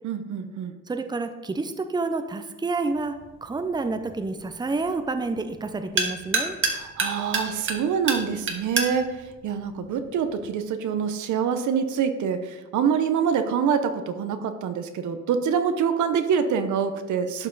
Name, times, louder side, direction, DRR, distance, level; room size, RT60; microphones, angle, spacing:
voice 1, 0.0-0.8 6.7-17.5, right 7 dB, 75° right, 8 dB, 0.9 m, -25 dB
voice 2, 0.9-3.1 3.4-6.6, right 3 dB, 15° right, 8 dB, 0.6 m, -29 dB
sound 1, 2.9-10.5, right 3 dB, 40° right, 1.4 m, -31 dB
11.5 x 5.4 x 4.0 m, 1.1 s
cardioid pair, 90°, 30 cm